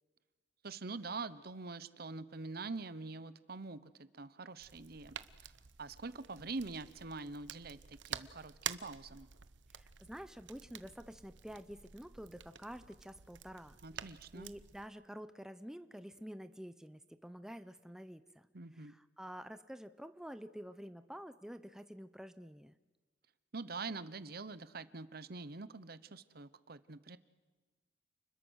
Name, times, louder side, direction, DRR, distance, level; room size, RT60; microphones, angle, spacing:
voice 1, 0.6-5.5 5.8-9.3 13.8-14.5 18.5-18.9 23.5-27.2, right 3 dB, 55° right, 15 dB, 1.0 m, -45 dB
sound 1, 4.6-14.9, right 9 dB, 85° right, 1.0 m, -49 dB
voice 2, 9.7-18.5 18.7-22.7, equal, 5° right, 11 dB, 0.7 m, -49 dB
30.0 x 21.5 x 6.5 m, 1.3 s
head